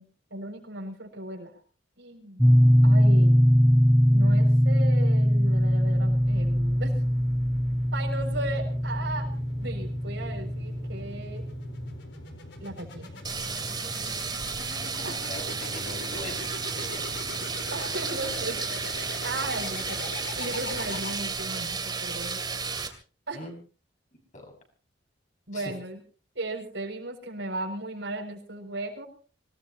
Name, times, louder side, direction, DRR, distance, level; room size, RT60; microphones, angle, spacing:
voice 1, 0.0-1.5 2.0-2.4 2.8-3.4 4.1-6.9 7.9-11.4 12.6-13.1 15.0-15.2 17.7-18.8 19.2-22.4 23.3-23.4 25.5-26.0 26.3-29.0, right 2 dB, 75° right, 0 dB, 6.6 m, -36 dB
sound 1, 2.4-12.0, equal, ahead, 0.8 m, -22 dB
sound 2, 5.5-21.6, left 2 dB, 75° left, 4.2 m, -41 dB
sound 3, 13.2-22.9, right 5 dB, 25° right, 2.4 m, -33 dB
voice 2, 14.8-17.1 23.3-23.5 24.3-24.5 25.5-25.8, left 1 dB, 40° left, 1 dB, 6.2 m, -41 dB
25.5 x 18.5 x 2.9 m, 0.37 s
head